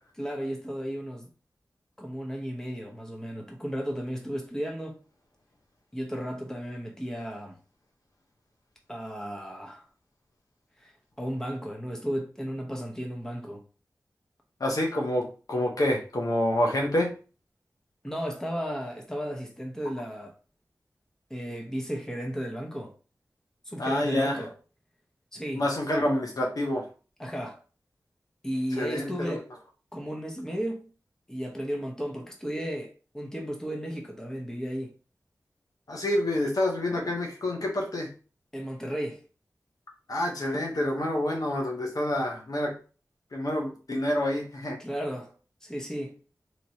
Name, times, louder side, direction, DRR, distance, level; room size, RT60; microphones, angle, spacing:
voice 1, 0.2-1.3 2.0-5.0 5.9-7.6 8.9-9.9 10.8-10.9 11.2-13.6 18.0-20.3 21.3-22.9 23.7-24.5 25.3-25.6 27.2-27.6 28.4-29.5 29.9-30.9 31.3-34.9 38.5-39.2 44.8-45.3 45.6-46.2, equal, 10° left, 0.9 m, -34 dB
voice 2, 14.6-17.1 23.8-24.5 25.5-26.9 28.7-29.4 35.9-38.1 40.1-42.7 43.3-44.8, left 1 dB, 70° left, 0.9 m, -27 dB
3.0 x 3.0 x 2.7 m
wide cardioid pair, 55°, 7 cm